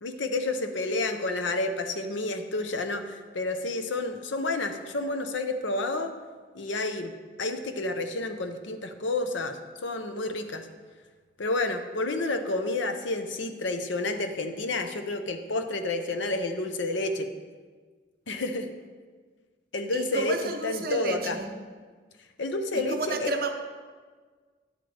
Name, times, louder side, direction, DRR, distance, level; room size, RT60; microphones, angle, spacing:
voice 1, 0.0-6.1 6.5-7.1 7.4-10.7 11.4-17.3 18.3-18.7 19.7-20.4 20.6-21.4 22.4-23.3, left 2 dB, 75° left, 7 dB, 0.7 m, -30 dB
voice 2, 19.9-21.5 22.7-23.5, right 3 dB, 50° right, 5 dB, 0.7 m, -31 dB
10.5 x 7.9 x 3.4 m, 1.5 s
head